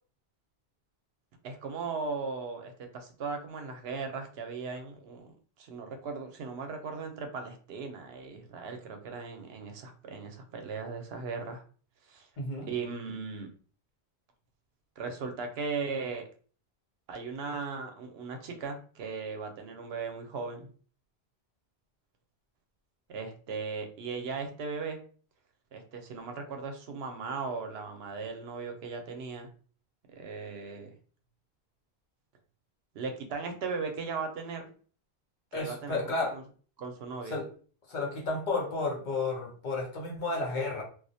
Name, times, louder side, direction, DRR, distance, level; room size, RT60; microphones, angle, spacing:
voice 1, 1.4-11.6 12.1-12.3 12.7-13.5 15.0-16.2 17.1-20.7 23.1-25.0 25.7-29.5 30.1-30.9 32.9-34.7 35.5-36.4 36.8-37.4, right 4 dB, 75° right, 5 dB, 0.8 m, -37 dB
voice 2, 12.4-12.7 35.5-36.3 37.3-37.5 37.9-40.8, left 3 dB, 50° left, -1 dB, 0.8 m, -32 dB
2.3 x 2.0 x 2.6 m, 0.41 s
omnidirectional pair, 1.1 m